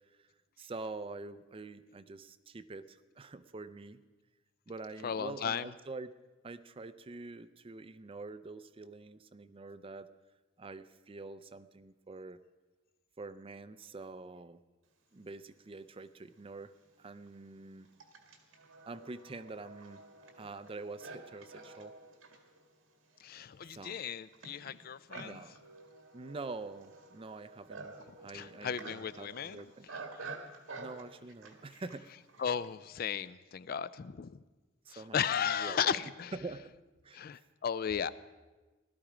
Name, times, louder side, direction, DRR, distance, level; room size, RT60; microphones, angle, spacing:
voice 1, 0.6-4.0 4.7-6.1 6.4-10.1 10.6-12.4 13.2-14.6 15.1-17.9 18.9-20.0 20.3-21.9 23.7-24.0 25.2-25.6 26.1-29.9 30.8-32.1 34.9-36.0 36.3-36.7 37.0-37.2, right 3 dB, 25° right, 13 dB, 0.5 m, -46 dB
voice 2, 5.0-5.7 23.2-25.4 28.3-29.7 32.4-34.4 34.9-36.3 37.1-38.1, left 7 dB, 50° left, 16 dB, 0.4 m, -35 dB
Livestock farm animals working animals, 16.0-16.1 16.8-32.8, right 3 dB, 90° right, 2.0 m, -50 dB
17.0 x 13.0 x 4.9 m, 1.2 s
head